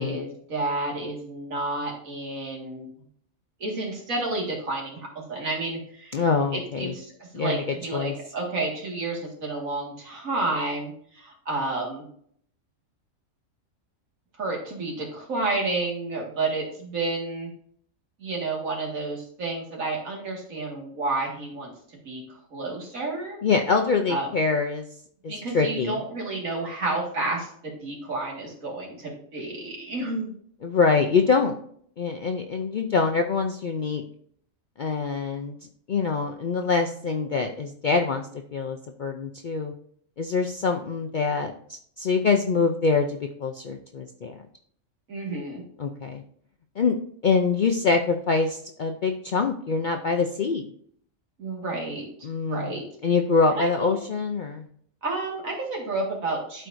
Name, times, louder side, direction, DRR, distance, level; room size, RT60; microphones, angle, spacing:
voice 1, 0.0-2.9 3.6-6.2 6.5-12.1 14.4-17.5 18.2-23.4 24.1-24.3 25.3-30.3 45.1-45.6 51.4-52.1 52.4-52.8 53.5-54.0 55.0-56.7, right 2 dB, 80° right, -1 dB, 2.3 m, -30 dB
voice 2, 6.1-6.9 7.3-7.6 7.9-8.1 23.4-24.9 25.2-26.0 30.6-31.6 32.0-34.0 34.8-35.6 35.9-38.3 38.5-39.7 40.2-44.3 45.8-46.2 46.8-47.0 47.2-50.6 52.2-52.8 53.0-54.6, left 4 dB, 60° left, 4 dB, 0.5 m, -24 dB
12.0 x 4.6 x 2.6 m, 0.62 s
omnidirectional pair, 1.4 m